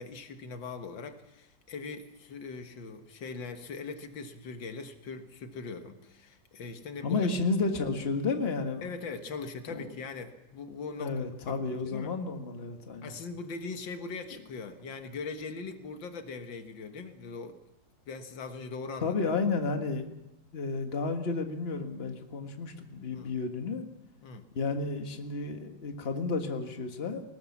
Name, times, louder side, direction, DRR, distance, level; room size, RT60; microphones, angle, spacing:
voice 1, 0.0-7.3 8.8-11.1 11.5-12.1 13.0-17.6 18.1-19.2 23.1-23.3 24.2-24.4, left 4 dB, 90° left, 7 dB, 2.2 m, -41 dB
voice 2, 7.0-8.9 9.7-9.9 11.0-13.1 19.0-20.1 20.5-23.8 24.6-27.2, left 4 dB, 35° left, 5 dB, 1.8 m, -32 dB
19.5 x 19.0 x 7.2 m, 0.88 s
omnidirectional pair, 2.0 m